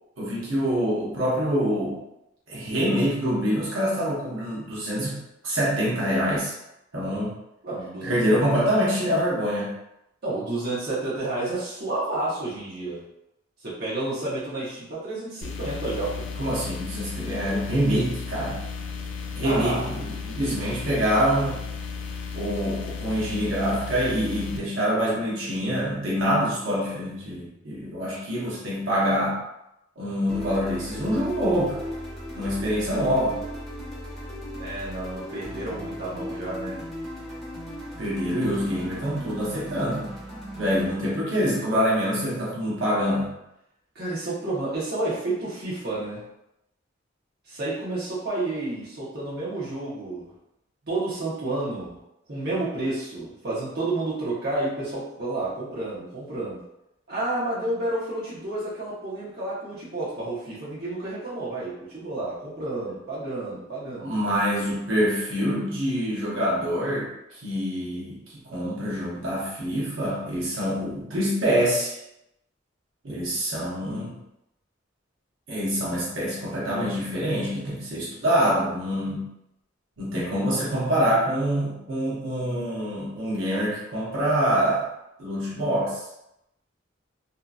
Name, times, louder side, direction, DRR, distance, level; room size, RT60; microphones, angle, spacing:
voice 1, 0.2-2.0 2.5-6.5 6.9-7.4 8.0-9.7 16.4-18.6 19.3-21.6 22.3-29.4 30.0-31.9 32.3-33.4 38.0-40.1 40.6-43.4 64.0-72.0 73.0-74.2 75.5-79.2 80.0-84.9 85.2-86.0, equal, 90° right, -6 dB, 0.9 m, -25 dB
voice 2, 7.6-8.2 10.2-13.0 13.6-16.2 19.4-19.9 34.6-36.8 43.9-46.2 47.5-50.3 50.9-52.0 52.3-56.6 57.1-64.1, right 2 dB, 55° right, -7 dB, 0.9 m, -30 dB
sound 1, 15.4-24.6, left 5 dB, 75° left, 0.4 m, -34 dB
sound 2, 30.3-40.9, equal, ahead, 0.9 m, -37 dB
2.7 x 2.5 x 2.3 m, 0.85 s
head